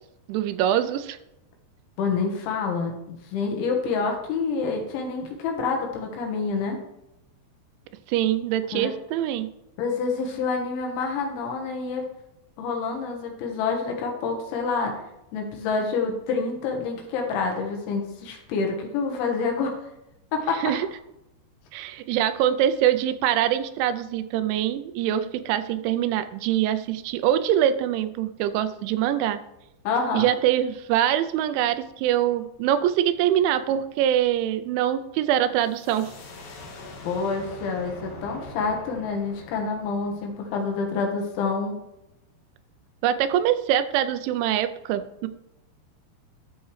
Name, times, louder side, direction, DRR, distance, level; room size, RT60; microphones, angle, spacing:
voice 1, 0.3-1.2 8.1-9.5 20.5-20.9 21.7-29.4 30.1-36.1 43.0-45.3, right 11 dB, 85° right, 11 dB, 2.9 m, -24 dB
voice 2, 2.0-6.8 8.7-8.9 9.8-12.0 12.6-15.0 15.3-19.8 20.3-20.6 29.9-30.3 37.1-41.8, left 4 dB, 80° left, 2 dB, 3.7 m, -27 dB
sound 1, 35.6-41.2, left 2 dB, 60° left, 2.2 m, -43 dB
12.5 x 5.9 x 3.2 m, 0.87 s
omnidirectional pair, 5.4 m